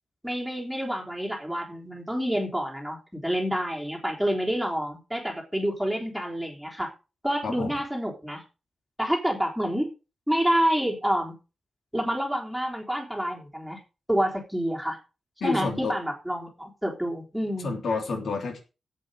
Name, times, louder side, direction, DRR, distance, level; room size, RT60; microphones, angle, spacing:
voice 1, 0.2-6.9 7.2-8.4 9.0-9.9 10.3-11.3 11.9-13.8 14.1-15.0 15.4-17.7, equal, ahead, -1 dB, 3.7 m, -28 dB
voice 2, 15.4-16.0 17.6-18.6, left 4 dB, 70° left, 3 dB, 3.4 m, -29 dB
14.0 x 8.5 x 5.1 m, 0.31 s
wide cardioid pair, 155°, 0 cm